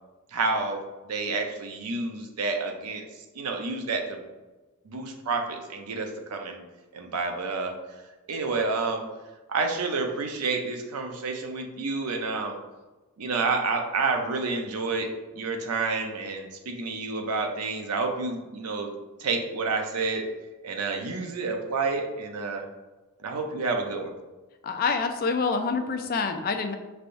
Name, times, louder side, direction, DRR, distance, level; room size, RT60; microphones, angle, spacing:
voice 1, 0.3-0.8 1.1-3.0 3.3-4.2 4.9-6.6 6.9-7.7 8.3-9.0 9.5-12.6 13.2-15.1 15.3-18.9 19.2-20.3 20.6-22.7 23.2-24.1, right 4 dB, 85° right, 3 dB, 0.6 m, -29 dB
voice 2, 24.6-26.7, left 4 dB, 40° left, 6 dB, 0.4 m, -26 dB
5.6 x 3.4 x 2.6 m, 1.2 s
head